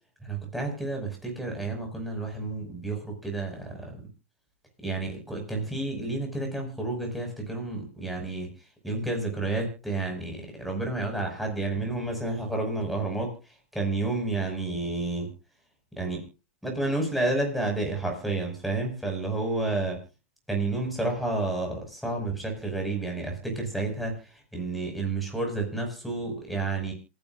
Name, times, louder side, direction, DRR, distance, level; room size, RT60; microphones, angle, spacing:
voice 1, 0.2-3.9 4.8-8.5 8.8-13.3 13.7-15.3 16.0-16.3 16.6-20.0 20.5-24.2 24.5-26.9, right 2 dB, ahead, 2 dB, 5.6 m, -30 dB
27.0 x 10.5 x 2.5 m, 0.31 s
hypercardioid pair, 145°, 7 cm